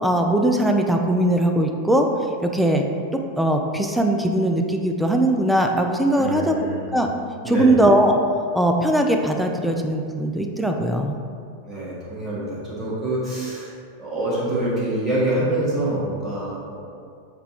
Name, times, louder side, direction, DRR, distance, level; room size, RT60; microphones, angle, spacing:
voice 1, 0.0-2.1 2.4-2.9 3.4-6.6 6.9-7.1 7.5-8.2 8.5-11.2, right 1 dB, 5° right, 3 dB, 0.3 m, -20 dB
voice 2, 6.1-6.8 7.4-7.7 11.6-13.7 14.0-16.8, right 1 dB, 20° right, -8 dB, 1.3 m, -26 dB
6.6 x 2.3 x 2.9 m, 2.3 s
figure-of-eight pair, 90°, 0 cm